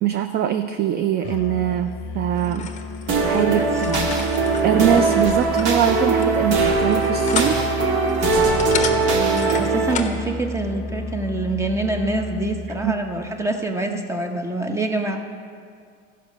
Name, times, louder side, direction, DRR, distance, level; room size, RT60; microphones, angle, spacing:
voice 1, 0.0-2.7 3.2-4.3 4.6-7.6 12.8-13.0, right 10 dB, 30° right, 9 dB, 0.4 m, -22 dB
Musical instrument, 1.2-13.1, left 3 dB, 50° left, 0.8 m, -32 dB
sound 1, 2.3-10.2, left 6 dB, 25° left, 0.9 m, -33 dB
sound 2, 3.1-9.9, right 4 dB, 60° right, 1.7 m, -20 dB
voice 2, 3.3-3.7 8.8-15.2, right 2 dB, 10° right, 5 dB, 0.8 m, -26 dB
13.5 x 5.5 x 6.3 m, 2.2 s
supercardioid pair, 135°, 32 cm